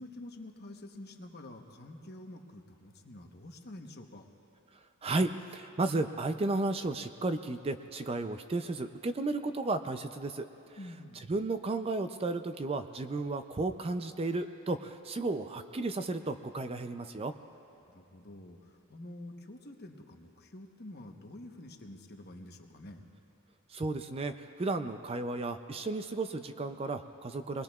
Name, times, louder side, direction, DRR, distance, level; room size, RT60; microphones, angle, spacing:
voice 1, 0.0-4.3 10.8-11.3 17.9-23.1, left 1 dB, 45° left, 3 dB, 1.0 m, -48 dB
voice 2, 5.0-10.5 11.3-17.3 23.7-27.6, right 2 dB, 25° right, 9 dB, 0.4 m, -33 dB
25.0 x 20.5 x 2.4 m, 2.8 s
head